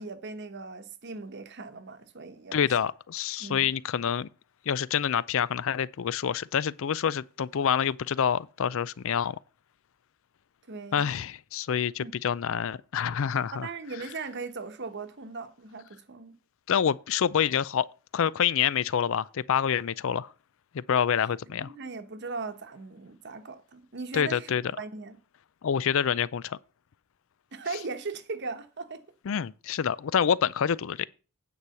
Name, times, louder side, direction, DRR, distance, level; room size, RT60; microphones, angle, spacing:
voice 1, 0.0-2.7 3.4-3.7 10.7-11.2 12.0-12.1 13.5-16.4 21.2-25.2 27.5-29.0, right 4 dB, 50° right, 1.0 m, -39 dB
voice 2, 2.5-4.3 4.7-9.4 10.9-13.7 16.7-17.9 18.1-20.3 20.7-21.7 24.1-24.6 25.6-26.6 29.3-31.1, left 8 dB, 60° left, 0.4 m, -27 dB
9.4 x 4.8 x 7.0 m
head